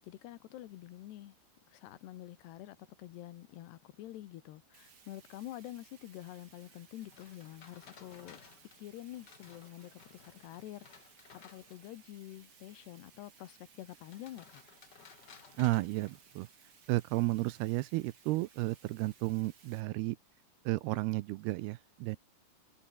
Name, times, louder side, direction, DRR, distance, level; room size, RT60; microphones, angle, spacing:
voice 1, 0.0-1.4 1.7-8.4 8.8-11.1 11.4-14.6, left 14 dB, 75° left, 3.4 m, -48 dB
Bathtub (filling or washing), 4.7-19.8, right 6 dB, 35° right, 2.6 m, -62 dB
sound 1, 7.0-12.1 14.0-16.7, left 6 dB, 50° left, 1.2 m, -58 dB
voice 2, 15.6-16.5 16.9-20.2 20.7-22.2, right 20 dB, 80° right, 2.4 m, -32 dB
omnidirectional pair, 5.0 m